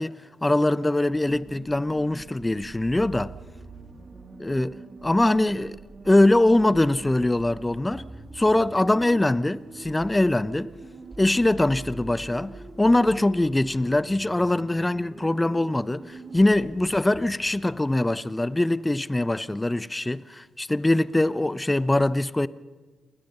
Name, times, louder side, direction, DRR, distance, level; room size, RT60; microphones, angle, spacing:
voice 1, 0.0-3.3 4.4-4.8 5.0-5.8 6.0-8.0 8.3-10.7 11.2-22.5, left 1 dB, 15° left, 0.9 m, -22 dB
sound 1, 1.1-19.4, right 3 dB, 35° right, 2.2 m, -44 dB
28.5 x 20.5 x 5.6 m
hypercardioid pair, 40°, 0 cm